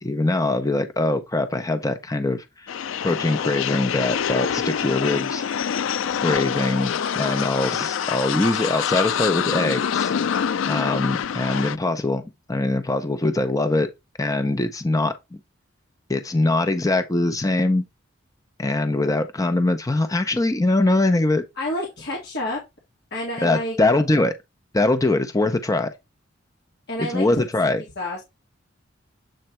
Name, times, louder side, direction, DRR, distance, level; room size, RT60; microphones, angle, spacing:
voice 1, 0.0-2.7 3.0-5.4 6.0-10.1 10.7-12.2 12.5-13.9 14.2-15.1 16.1-17.8 18.6-21.4 23.4-24.3 24.7-25.9 27.0-27.8, left 2 dB, 20° left, 0.6 m, -22 dB
sound 1, 2.7-11.8, left 8 dB, 85° left, 0.4 m, -26 dB
voice 2, 21.6-22.6 23.1-23.8 26.9-27.7 28.0-28.2, left 1 dB, 60° left, 1.8 m, -29 dB
7.7 x 3.2 x 4.4 m
head